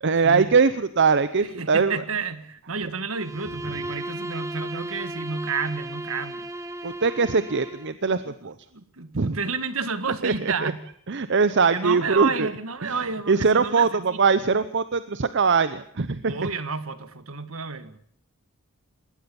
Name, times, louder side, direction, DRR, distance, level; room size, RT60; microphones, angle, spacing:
voice 1, 0.0-2.0 6.8-8.5 9.1-9.4 10.2-10.7 11.1-12.5 12.8-12.9 13.3-16.3, right 5 dB, 55° right, 0.8 m, -22 dB
voice 2, 1.4-6.5 8.3-8.4 8.7-10.8 11.7-14.2 16.2-18.0, right 4 dB, 70° right, 1.7 m, -30 dB
Bowed string instrument, 3.1-8.0, right 1 dB, 15° right, 1.5 m, -36 dB
20.5 x 17.5 x 7.0 m
head